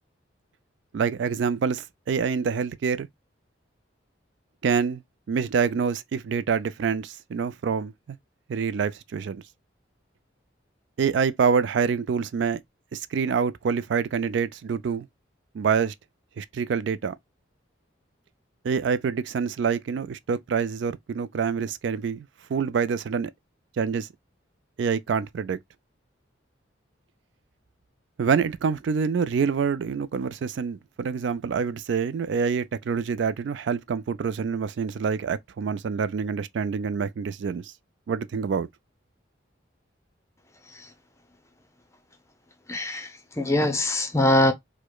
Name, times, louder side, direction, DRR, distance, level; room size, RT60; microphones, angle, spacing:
voice 1, 0.9-3.1 4.6-5.0 5.3-8.2 8.5-9.4 11.0-12.6 12.9-15.1 15.5-15.9 16.4-17.1 18.6-23.3 23.8-24.1 24.8-25.6 28.2-37.7 38.1-38.7, right 6 dB, 65° right, 0.3 m, -26 dB
voice 2, 42.7-44.5, left 1 dB, 15° left, 0.6 m, -23 dB
4.7 x 2.1 x 2.2 m
head